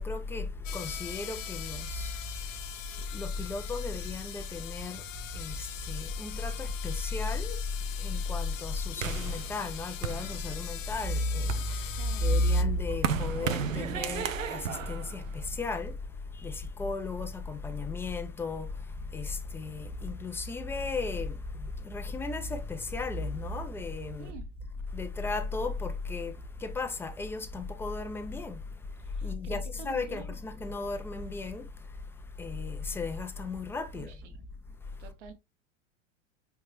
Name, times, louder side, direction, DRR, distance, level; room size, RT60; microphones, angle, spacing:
voice 1, 0.0-24.3 24.9-34.3 34.8-35.1, left 2 dB, 5° left, 0.5 m, -34 dB
sound 1, 0.6-12.6, left 11 dB, 80° left, 0.5 m, -42 dB
sound 2, 9.0-10.8 11.3-15.9, right 8 dB, 90° right, 0.5 m, -35 dB
voice 2, 12.0-12.4 24.2-24.5 29.0-30.3 33.9-34.4 35.0-35.3, right 8 dB, 65° right, 1.0 m, -48 dB
4.6 x 3.4 x 3.0 m
hypercardioid pair, 90°, 38 cm